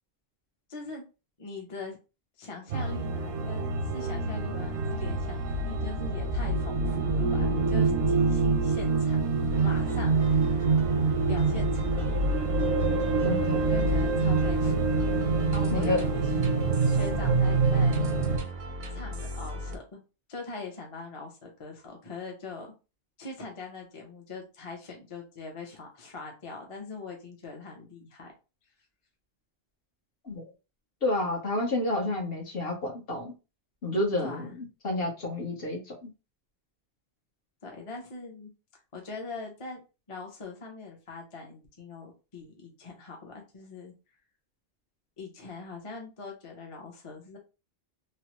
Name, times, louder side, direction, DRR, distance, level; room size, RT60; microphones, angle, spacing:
voice 1, 0.7-1.0 1.4-2.0 2.4-3.7 3.9-9.2 9.6-10.6 11.3-12.2 13.5-14.8 15.5-16.2 16.8-18.1 18.9-20.0 20.3-22.7 23.2-28.3 34.2-34.6 37.6-38.5 38.9-39.8 40.1-43.9 45.2-47.4, left 4 dB, 35° left, 1 dB, 0.7 m, -41 dB
sound 1, 2.7-18.4, right 3 dB, 85° right, 0.9 m, -26 dB
sound 2, 9.5-19.8, left 1 dB, 50° right, 0.4 m, -37 dB
voice 2, 13.2-13.6 15.7-16.1 30.2-30.4 31.0-33.3 33.8-36.1, left 2 dB, 60° left, -1 dB, 1.2 m, -30 dB
3.1 x 2.1 x 2.9 m, 0.29 s
omnidirectional pair, 1.1 m